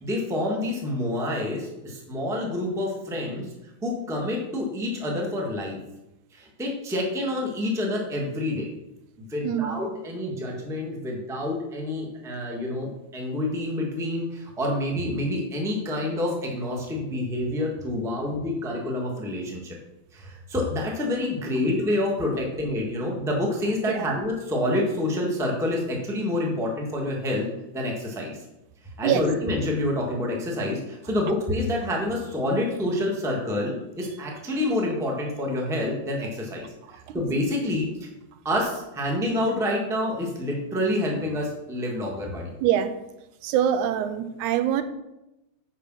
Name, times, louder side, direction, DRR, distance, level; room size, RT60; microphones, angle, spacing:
voice 1, 0.0-3.5 3.8-5.8 6.3-8.7 9.3-19.7 20.1-27.5 27.7-28.4 29.0-38.1 38.4-42.5, left 1 dB, ahead, 0.9 m, -28 dB
voice 2, 9.4-9.8 23.9-24.1 29.0-29.3 37.1-37.2 42.6-43.0 43.4-44.8, right 10 dB, 85° right, 2.1 m, -24 dB
9.9 x 5.2 x 6.3 m
omnidirectional pair, 3.4 m